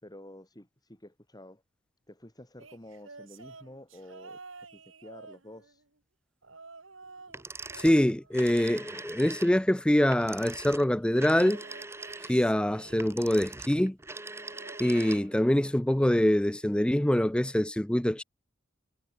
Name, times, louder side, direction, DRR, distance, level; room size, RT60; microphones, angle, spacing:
voice 1, 0.0-1.6 2.1-4.4 4.7-5.8, left 1 dB, 20° left, 6.1 m, -50 dB
sound 1, 2.6-5.9 6.4-7.4 7.7-9.3 11.3-13.5 14.4-15.9 16.2-16.6 17.7-17.8, right 4 dB, 90° right, 4.6 m, -51 dB
sound 2, 7.3-15.5, right 3 dB, 15° right, 1.2 m, -42 dB
voice 2, 7.7-11.6 12.3-14.0 14.8-18.2, left 1 dB, 5° left, 0.5 m, -24 dB
head